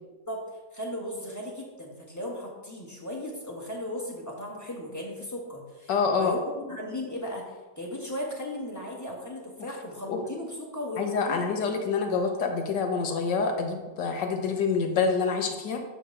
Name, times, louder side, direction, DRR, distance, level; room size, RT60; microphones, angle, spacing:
voice 1, 0.7-5.9 6.2-6.4 6.6-11.5, left 1 dB, 10° left, -2 dB, 1.2 m, -36 dB
voice 2, 5.9-6.3 10.1-10.2 11.0-15.8, left 5 dB, 80° left, 4 dB, 1.6 m, -27 dB
8.3 x 3.3 x 6.5 m, 1.2 s
omnidirectional pair, 1.9 m